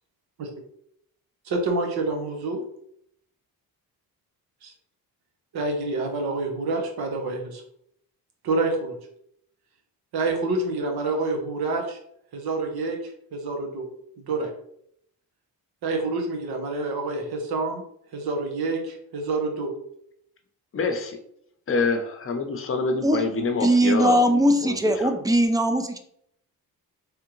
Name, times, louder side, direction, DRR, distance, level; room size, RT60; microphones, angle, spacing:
voice 1, 1.4-2.6 4.6-4.7 5.5-7.6 8.4-9.0 10.1-12.0 12.3-13.0 13.3-13.9 14.2-14.5 15.8-17.8 18.1-19.7, right 3 dB, 90° right, 2 dB, 1.0 m, -27 dB
voice 2, 20.7-21.2 21.7-24.2 24.6-25.1, left 4 dB, 35° left, 5 dB, 0.6 m, -26 dB
voice 3, 23.6-26.0, right 1 dB, 10° right, 7 dB, 0.3 m, -20 dB
3.5 x 3.3 x 3.0 m, 0.70 s
cardioid pair, 130°, 36 cm